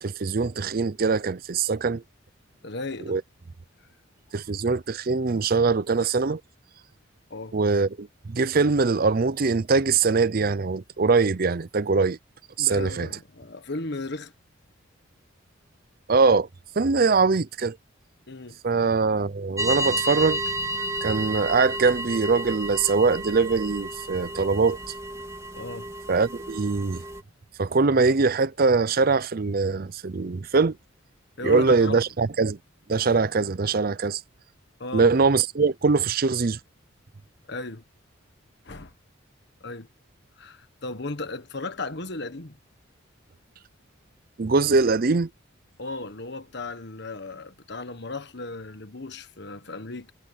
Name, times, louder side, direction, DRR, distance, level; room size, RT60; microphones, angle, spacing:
voice 1, 0.0-2.0 3.1-3.2 4.3-6.4 7.5-12.2 12.6-13.1 16.1-16.5 16.8-17.8 18.6-20.4 20.7-24.8 26.1-27.0 27.6-30.7 31.4-32.6 32.9-34.2 34.9-36.6 44.4-45.3, right 4 dB, 45° right, 0.6 m, -22 dB
voice 2, 2.6-3.2 7.3-7.6 12.6-14.3 18.3-18.6 25.5-25.9 31.4-32.0 34.8-35.1 37.5-37.8 38.6-38.9 39.6-39.9 40.4-42.6 45.8-50.1, left 2 dB, 55° left, 1.4 m, -35 dB
sound 1, 19.6-27.2, equal, 15° right, 2.6 m, -32 dB
head